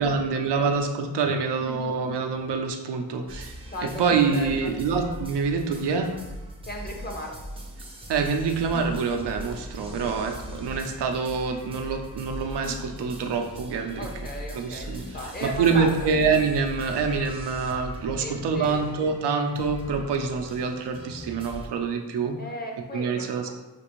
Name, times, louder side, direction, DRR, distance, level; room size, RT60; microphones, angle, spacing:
voice 1, 0.0-3.6 4.0-6.1 8.1-14.1 14.5-15.0 15.4-22.4 22.9-23.5, right 5 dB, 80° right, 4 dB, 0.6 m, -26 dB
voice 2, 1.5-2.2 3.3-3.4 3.7-4.7 6.7-7.3 9.9-10.1 14.0-15.9 18.2-18.8 22.4-23.5, left 1 dB, 25° left, 0 dB, 0.7 m, -36 dB
sound 1, 3.3-21.7, equal, 15° right, 0.5 m, -40 dB
sound 2, 8.1-9.5 10.1-11.2 12.5-13.4 14.8-15.7, left 3 dB, 70° left, 0.8 m, -45 dB
5.9 x 2.5 x 3.0 m, 1.1 s
wide cardioid pair, 125°, 40 cm